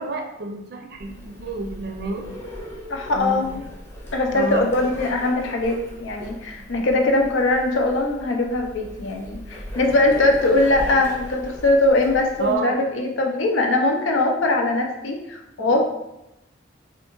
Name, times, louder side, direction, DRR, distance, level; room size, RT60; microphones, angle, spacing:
voice 1, 0.0-2.2 3.1-3.5 4.3-4.6 6.7-6.9 12.4-13.0 15.6-15.8, right 3 dB, 55° right, 3 dB, 0.5 m, -29 dB
Bird, 0.9-12.5, left 1 dB, 15° left, 0.6 m, -38 dB
voice 2, 2.9-3.6 4.1-15.8, left 2 dB, 90° left, 2 dB, 0.5 m, -21 dB
3.4 x 2.4 x 3.0 m, 0.89 s
head